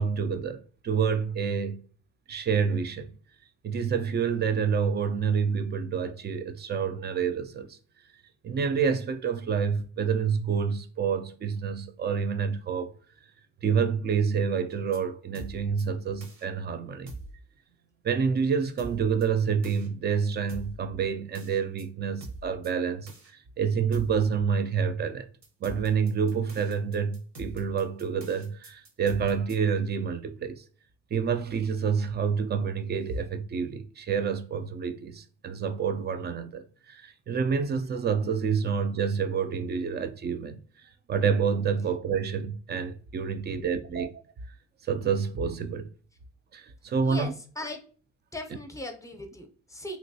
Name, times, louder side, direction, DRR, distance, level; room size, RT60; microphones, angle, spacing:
voice 1, 0.0-1.8 2.3-3.1 3.6-7.8 8.4-12.9 13.6-17.1 18.0-25.3 25.6-30.6 31.1-40.6 41.1-44.1 44.8-45.9 46.5-47.3, right 6 dB, 35° right, 0.4 m, -28 dB
sound 1, 14.7-15.0 15.4-15.8 16.2-16.4 17.1-17.4 18.8-19.3 19.6-19.9 20.5-20.8 21.4-21.8 22.2-22.7 23.1-23.3 23.9-24.2 25.4-29.6, right 2 dB, 65° right, 1.1 m, -43 dB
voice 2, 47.0-47.8 48.3-50.0, left 1 dB, 10° left, 0.7 m, -39 dB
3.0 x 3.0 x 2.7 m
cardioid pair, 90°, 30 cm